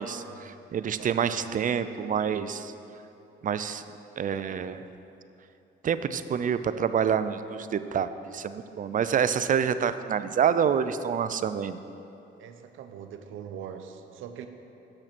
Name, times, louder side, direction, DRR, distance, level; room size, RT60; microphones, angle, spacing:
voice 1, 0.0-2.7 3.4-3.8 4.2-4.8 5.8-11.8, right 7 dB, 40° right, 12 dB, 0.4 m, -27 dB
voice 2, 0.9-1.4 12.4-14.5, right 8 dB, 80° right, 7 dB, 0.7 m, -42 dB
8.7 x 6.6 x 6.0 m, 2.9 s
cardioid pair, 90°, 20 cm